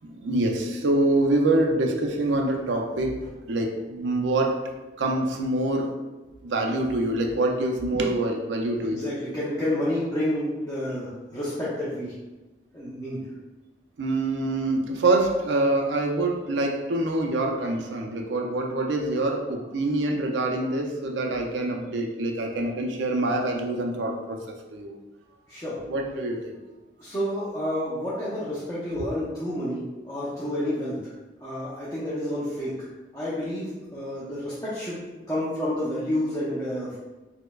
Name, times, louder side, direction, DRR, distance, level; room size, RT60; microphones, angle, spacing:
voice 1, 0.0-3.2 3.5-4.6 5.0-6.0 6.4-9.1 14.0-24.4 24.7-24.9 25.9-26.5, right 2 dB, 85° right, 2 dB, 0.5 m, -25 dB
voice 2, 8.8-12.2 12.7-13.3 25.5-25.8 27.0-31.1 31.4-32.8 33.1-37.0, left 1 dB, 15° left, -10 dB, 0.6 m, -30 dB
4.4 x 2.1 x 2.3 m, 1.1 s
head